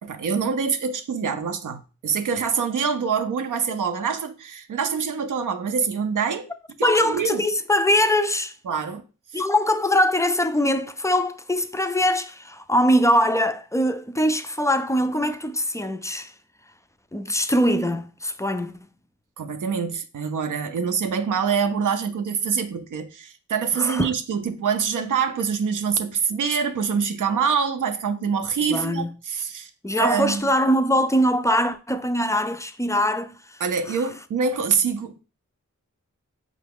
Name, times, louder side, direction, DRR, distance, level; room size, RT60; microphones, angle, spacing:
voice 1, 0.0-6.5 6.8-7.4 8.6-9.0 9.3-9.4 19.4-29.7 30.0-30.5 33.6-35.2, right 6 dB, 80° right, 0.5 m, -25 dB
voice 2, 6.8-8.5 9.3-16.3 17.1-18.7 23.8-24.1 28.6-29.1 29.8-33.6, equal, 10° left, 0.3 m, -22 dB
4.8 x 2.2 x 3.5 m
cardioid pair, 60°, 31 cm